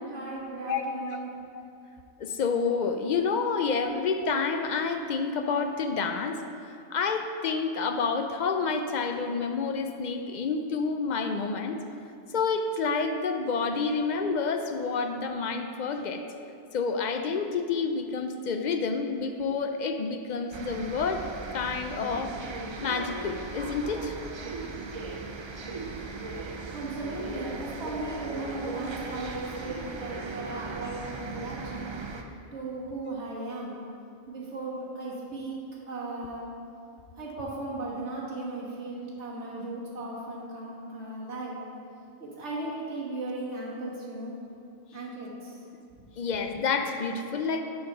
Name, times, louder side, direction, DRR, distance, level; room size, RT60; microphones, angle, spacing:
voice 1, 0.1-1.3 26.7-31.9 32.5-33.8 34.3-35.6 35.9-36.4 37.2-41.6 42.2-44.3 44.9-45.5, right 2 dB, 85° right, -5 dB, 1.7 m, -36 dB
voice 2, 0.7-1.2 1.5-1.6 2.2-6.4 6.9-11.8 12.3-16.2 16.7-21.3 21.5-22.4 22.8-24.1 46.2-47.6, left 5 dB, 60° left, 6 dB, 0.5 m, -29 dB
sound 1, 20.5-32.2, right 3 dB, 50° right, 0.3 m, -38 dB
8.6 x 4.3 x 5.6 m, 2.6 s
omnidirectional pair, 1.1 m